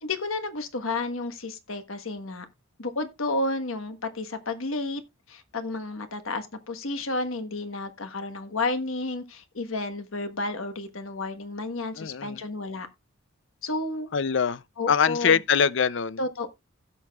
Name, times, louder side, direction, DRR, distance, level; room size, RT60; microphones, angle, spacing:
voice 1, 0.0-2.5 2.8-5.0 5.3-12.9 13.6-14.1 14.8-15.4 16.2-16.5, left 2 dB, 75° left, 1.3 m, -31 dB
voice 2, 12.0-12.4 14.1-14.6 14.9-16.2, left 6 dB, 60° left, 0.5 m, -23 dB
16.5 x 6.5 x 2.3 m
head